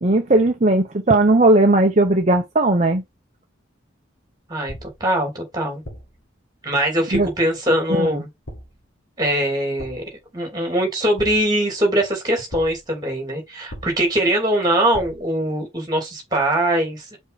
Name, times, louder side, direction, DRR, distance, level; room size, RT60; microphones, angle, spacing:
voice 1, 0.0-3.0 7.1-7.3 7.9-8.2, right 2 dB, 35° right, 0.8 m, -17 dB
voice 2, 4.5-5.8 6.6-8.3 9.2-10.0 10.3-17.2, right 1 dB, 20° right, 2.9 m, -22 dB
sound 1, 4.7-5.1 5.8-6.3 7.1-7.5 8.5-8.9 9.8-10.2 11.2-11.7 12.5-12.9 13.7-14.2 14.9-15.4, equal, 60° left, 2.0 m, -38 dB
5.3 x 4.4 x 4.2 m
head